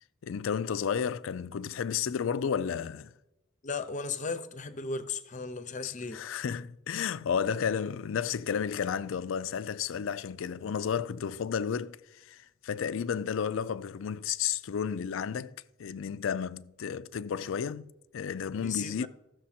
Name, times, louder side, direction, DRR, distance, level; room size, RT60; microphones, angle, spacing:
voice 1, 0.2-3.1 5.8-15.5 15.8-19.1, left 7 dB, 70° left, 0.4 m, -32 dB
voice 2, 3.6-6.2 18.6-19.1, left 4 dB, 35° left, 0.7 m, -35 dB
14.5 x 6.6 x 4.3 m
head